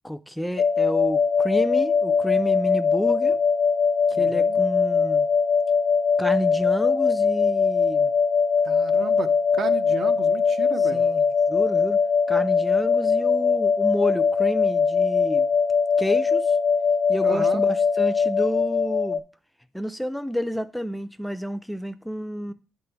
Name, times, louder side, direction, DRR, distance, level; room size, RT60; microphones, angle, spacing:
voice 1, 0.0-3.4 4.1-5.3 6.2-8.1 10.8-12.0 12.3-15.5 16.0-16.6 17.1-19.2 19.7-22.5, equal, 5° left, 0.3 m, -30 dB
sound 1, 0.6-19.2, left 5 dB, 75° left, 0.4 m, -21 dB
voice 2, 4.1-4.6 8.6-11.0 17.2-17.6, right 5 dB, 55° right, 0.6 m, -33 dB
8.6 x 3.4 x 4.4 m
cardioid pair, 90°, 0 cm